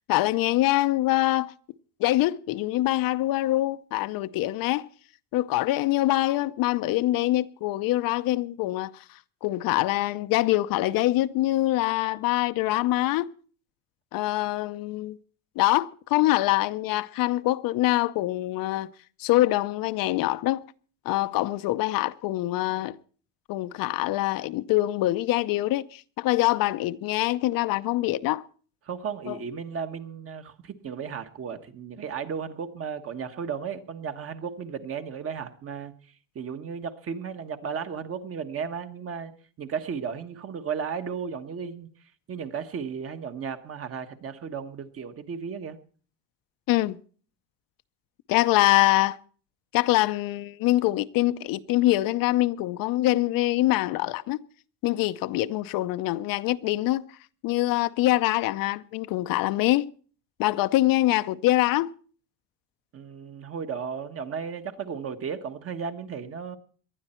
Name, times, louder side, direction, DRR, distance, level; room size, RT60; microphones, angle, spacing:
voice 1, 0.1-1.5 2.0-4.8 5.3-8.9 9.4-13.3 14.1-15.2 15.6-18.9 19.2-20.6 21.1-23.0 23.5-28.4 29.3-29.4 46.7-47.0 48.3-49.2 49.7-54.4 54.8-57.0 57.4-59.9 60.4-61.9, left 17 dB, 70° left, 0.7 m, -24 dB
voice 2, 28.8-35.9 36.3-39.3 39.6-41.9 42.3-45.8 62.9-66.6, right 6 dB, 40° right, 1.4 m, -34 dB
19.0 x 12.0 x 4.4 m
cardioid pair, 140°, 36 cm